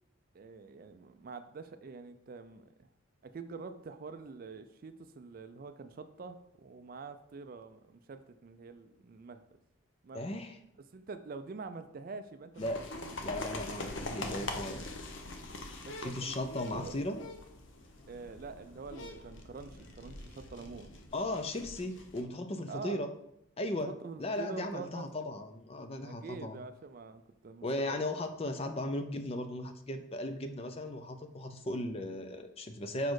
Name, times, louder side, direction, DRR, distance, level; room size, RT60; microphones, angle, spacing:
voice 1, 0.3-2.9 3.2-9.4 10.0-10.3 10.9-12.7 13.1-13.2 15.9-16.4 16.7-17.0 18.1-20.9 22.7-23.0 23.8-25.3 26.0-28.0, right 4 dB, 45° right, 9 dB, 0.3 m, -46 dB
voice 2, 10.1-10.6 12.6-12.8 13.2-14.8 16.0-17.2 21.1-23.1 23.6-23.9 24.2-26.6 27.6-33.1, left 1 dB, 30° left, 7 dB, 0.4 m, -36 dB
sound 1, 12.6-22.2, left 2 dB, 60° left, 0.7 m, -43 dB
5.1 x 4.2 x 4.7 m, 0.77 s
head